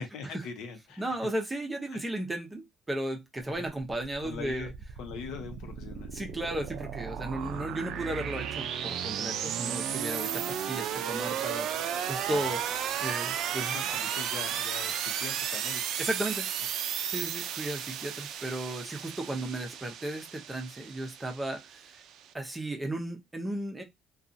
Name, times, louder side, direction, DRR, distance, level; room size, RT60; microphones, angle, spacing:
voice 1, 0.0-1.3 1.9-2.0 3.5-3.7 4.2-4.7 5.0-6.1 7.3-7.7 12.2-12.5 13.7-15.8, left 6 dB, 85° left, 0.7 m, -42 dB
voice 2, 1.0-4.7 6.1-12.6 13.0-13.8 16.0-16.5 17.1-21.9 22.3-23.8, right 1 dB, 15° right, 0.6 m, -35 dB
sound 1, 3.9-22.3, right 9 dB, 75° right, 0.4 m, -34 dB
2.6 x 2.3 x 2.5 m
cardioid pair, 120°, 0 cm